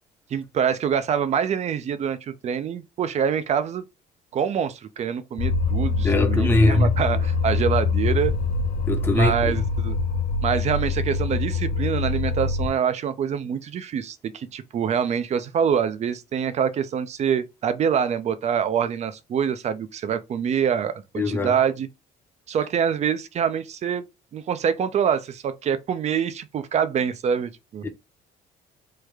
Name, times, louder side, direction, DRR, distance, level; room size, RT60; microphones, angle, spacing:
voice 1, 0.3-3.8 4.3-8.3 9.1-10.0 10.4-21.9 22.5-24.1 24.3-27.8, right 8 dB, 40° right, 0.5 m, -25 dB
sound 1, 5.4-12.7, left 5 dB, 55° left, 0.5 m, -24 dB
voice 2, 6.0-6.9 8.9-9.5 21.2-21.5 27.8-27.9, left 2 dB, 15° left, 0.7 m, -21 dB
3.2 x 2.1 x 3.4 m
cardioid pair, 110°, 17 cm